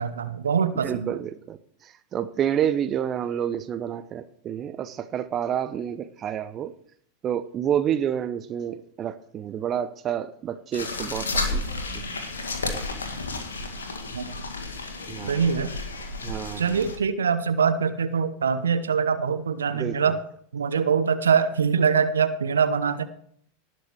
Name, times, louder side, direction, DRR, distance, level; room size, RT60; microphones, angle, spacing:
voice 1, 0.0-1.2 14.1-14.3 15.3-15.7 16.6-20.2 20.5-23.0, right 6 dB, 75° right, 1.0 m, -23 dB
voice 2, 0.8-6.7 7.2-11.8 12.7-12.8 15.1-15.4 16.2-16.8 19.7-20.1, right 9 dB, 30° right, 0.7 m, -29 dB
sound 1, 10.7-17.0, left 3 dB, 75° left, 2.0 m, -32 dB
19.0 x 6.3 x 4.6 m
figure-of-eight pair, 85°, 0 cm